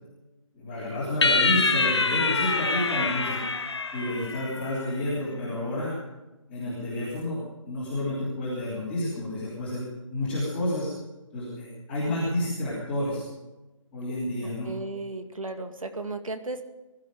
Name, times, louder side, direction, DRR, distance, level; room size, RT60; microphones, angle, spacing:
voice 1, 0.5-3.4 3.9-5.9 6.5-10.9 11.3-13.2 13.9-14.7, left 1 dB, 5° left, -13 dB, 3.2 m, -30 dB
sound 1, 1.2-4.8, left 4 dB, 55° left, 1.5 m, -25 dB
voice 2, 14.6-16.6, right 2 dB, 85° right, 7 dB, 2.2 m, -35 dB
21.5 x 12.5 x 5.2 m, 1.1 s
figure-of-eight pair, 175°, 17 cm